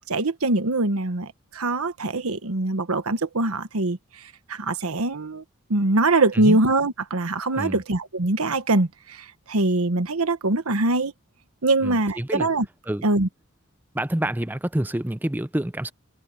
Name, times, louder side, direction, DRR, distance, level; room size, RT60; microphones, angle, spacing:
voice 1, 0.1-4.0 4.5-5.4 5.7-11.1 11.6-12.6 13.0-13.3, right 2 dB, 85° right, 1.3 m, -23 dB
voice 2, 11.8-12.5 12.9-13.1 13.9-15.9, right 1 dB, 10° right, 0.5 m, -27 dB
head